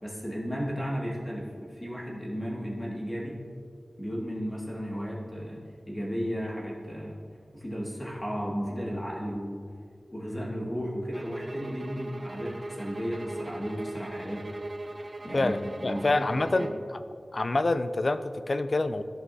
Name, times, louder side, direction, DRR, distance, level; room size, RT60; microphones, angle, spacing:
voice 1, 0.0-3.3 4.0-5.6 5.9-7.2 7.5-9.6 10.1-14.5 15.2-15.5 15.8-16.2 16.5-16.7, equal, 20° left, -5 dB, 2.1 m, -34 dB
sound 1, 11.1-16.9, right 2 dB, 45° right, 0.4 m, -39 dB
voice 2, 15.3-16.7 17.3-19.0, left 2 dB, 50° left, 11 dB, 0.4 m, -27 dB
14.0 x 5.3 x 2.8 m, 2.3 s
wide cardioid pair, 75°, 0 cm